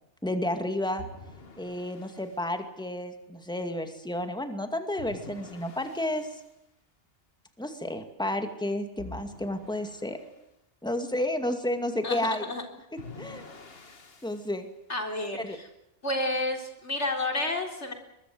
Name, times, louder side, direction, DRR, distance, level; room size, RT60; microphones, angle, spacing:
voice 1, 0.2-1.1 1.6-6.4 7.6-10.2 10.8-12.4 13.2-13.4 14.2-14.7 15.3-15.6, left 1 dB, 5° left, 7 dB, 2.3 m, -31 dB
sound 1, 1.0-2.4 5.0-6.5 9.0-10.3 13.0-14.5, left 3 dB, 55° left, 2.0 m, -47 dB
voice 2, 12.0-12.6 14.9-15.7 16.0-17.9, left 2 dB, 70° left, 4 dB, 4.2 m, -30 dB
23.0 x 22.0 x 8.0 m, 0.85 s
omnidirectional pair, 1.2 m